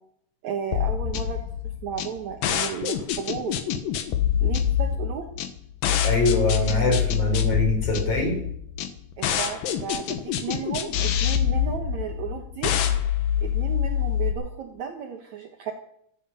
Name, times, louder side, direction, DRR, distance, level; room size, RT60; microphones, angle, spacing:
voice 1, 0.4-1.4 1.8-3.6 4.4-5.3 9.2-12.7 13.4-15.7, right 7 dB, 65° right, 3 dB, 2.3 m, -33 dB
sound 1, 0.7-14.3, left 10 dB, 80° left, 2.9 m, -25 dB
voice 2, 6.0-8.4, left 1 dB, 45° left, 3 dB, 4.9 m, -24 dB
15.0 x 13.5 x 5.6 m, 0.70 s
omnidirectional pair, 4.0 m